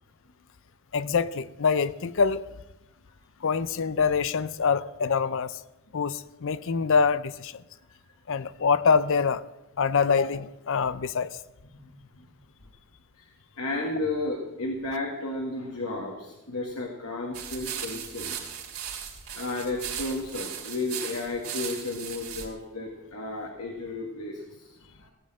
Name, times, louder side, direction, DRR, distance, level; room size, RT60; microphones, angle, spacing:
voice 1, 0.9-2.4 3.4-5.6 5.9-7.6 8.3-9.4 9.8-11.4, left 5 dB, 60° left, 16 dB, 0.6 m, -25 dB
voice 2, 11.7-12.2 13.2-18.4 19.3-25.1, left 2 dB, 80° left, 0 dB, 1.8 m, -33 dB
sound 1, 17.3-22.5, right 9 dB, 75° right, 2.7 m, -37 dB
17.0 x 7.7 x 7.6 m, 1.0 s
head